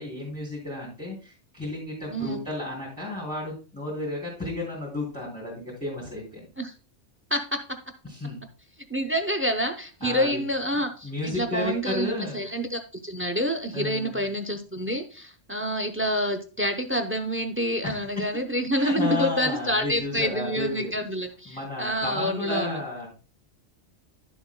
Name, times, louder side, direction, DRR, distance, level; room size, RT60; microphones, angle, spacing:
voice 1, 0.0-6.4 8.0-8.4 10.0-10.4 10.7-12.5 13.7-14.2 17.8-18.2 18.7-20.9 21.5-23.1, left 2 dB, 5° left, -7 dB, 2.8 m, -32 dB
voice 2, 2.1-2.4 6.6-6.7 7.3-7.6 8.9-22.8, equal, 15° right, 7 dB, 0.4 m, -28 dB
11.0 x 7.0 x 2.2 m, 0.35 s
omnidirectional pair, 1.3 m